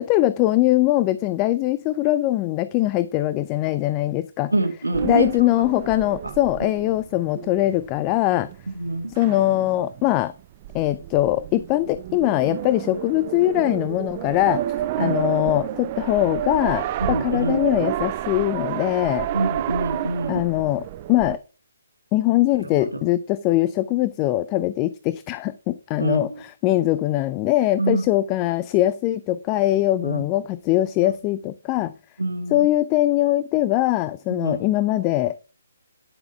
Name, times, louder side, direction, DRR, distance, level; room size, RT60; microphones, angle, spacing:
voice 1, 0.0-4.5 5.0-8.5 9.1-10.3 10.7-14.7 15.0-19.3 20.3-21.4 22.1-31.9 32.5-35.5, left 15 dB, 25° left, 15 dB, 0.4 m, -22 dB
voice 2, 4.5-5.3 6.2-6.3 8.7-9.1 15.0-15.3 17.0-17.6 19.3-20.4 22.6-22.7 26.0-26.2 27.8-28.0 30.0-30.2 32.2-32.7 34.3-34.6, right 2 dB, 85° right, 5 dB, 2.2 m, -25 dB
sound 1, 4.9-21.4, right 12 dB, 35° right, 0.6 m, -31 dB
10.5 x 6.4 x 3.4 m, 0.34 s
figure-of-eight pair, 140°, 0 cm